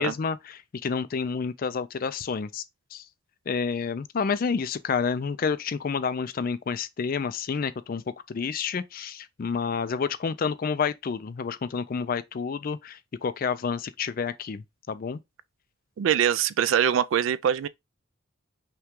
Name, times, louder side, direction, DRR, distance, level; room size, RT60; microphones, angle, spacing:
voice 1, 0.0-2.6 2.9-3.0 3.5-8.0 8.3-15.2, left 5 dB, 45° left, 0.4 m, -29 dB
voice 2, 16.0-17.7, right 9 dB, 65° right, 0.3 m, -23 dB
5.7 x 2.3 x 3.6 m
head